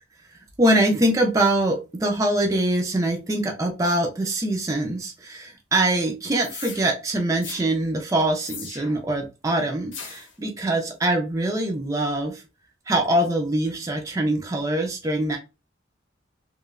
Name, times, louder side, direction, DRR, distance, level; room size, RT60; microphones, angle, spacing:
voice 1, 0.6-12.4 12.9-15.4, right 1 dB, 15° right, 1 dB, 0.4 m, -23 dB
sound 1, 6.4-6.8 7.4-7.6 8.4-9.1 9.9-10.3, left 5 dB, 70° left, 0.7 m, -38 dB
3.0 x 2.1 x 2.3 m, 0.28 s
head